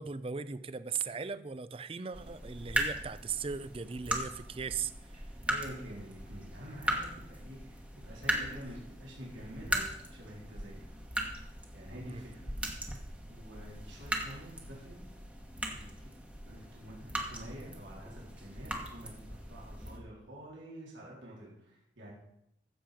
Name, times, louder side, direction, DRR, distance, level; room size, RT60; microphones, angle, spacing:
voice 1, 0.0-5.2 12.0-12.2, right 6 dB, 30° right, 14 dB, 0.4 m, -38 dB
sound 1, 2.1-20.0, right 1 dB, 5° right, 1.1 m, -39 dB
voice 2, 5.5-7.8 8.0-9.8 10.1-11.0 11.7-12.3 12.8-15.0 15.8-16.1 16.4-22.1, equal, 85° right, -4 dB, 3.7 m, -48 dB
13.0 x 7.7 x 5.1 m, 0.79 s
head